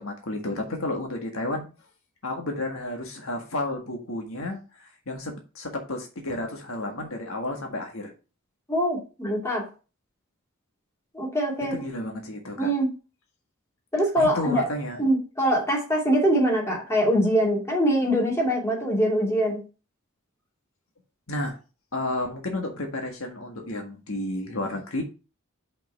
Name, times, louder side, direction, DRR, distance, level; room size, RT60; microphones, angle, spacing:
voice 1, 0.0-1.7 2.2-8.1 11.7-12.7 14.2-15.0 21.3-21.6 21.9-25.0, left 1 dB, 80° left, 3 dB, 1.7 m, -32 dB
voice 2, 8.7-9.7 11.1-11.8 12.6-12.9 13.9-14.7 15.0-19.6, equal, 15° left, -3 dB, 2.6 m, -23 dB
5.5 x 5.3 x 4.7 m, 0.32 s
head